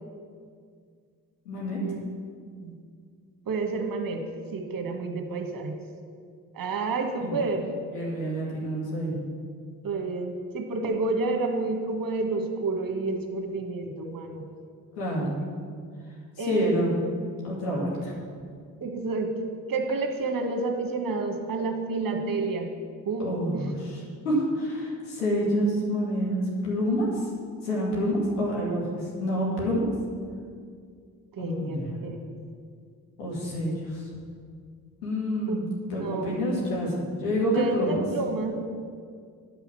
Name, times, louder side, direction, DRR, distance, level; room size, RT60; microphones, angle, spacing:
voice 1, 1.5-1.8 7.2-7.4 7.9-9.2 15.0-15.3 16.5-17.0 17.4-18.1 23.2-27.1 27.6-29.9 31.4-31.9 33.2-34.0 35.0-35.6 35.9-38.0, equal, 85° left, -4 dB, 2.2 m, -28 dB
voice 2, 3.5-4.2 4.5-5.8 6.5-7.7 9.8-14.4 16.4-16.8 18.8-19.3 19.7-22.7 23.0-23.6 31.3-31.8 35.5-35.6 36.0-36.4 37.5-38.5, right 3 dB, 50° right, 3 dB, 1.5 m, -29 dB
11.0 x 5.6 x 6.1 m, 2.1 s
hypercardioid pair, 40°, 45 cm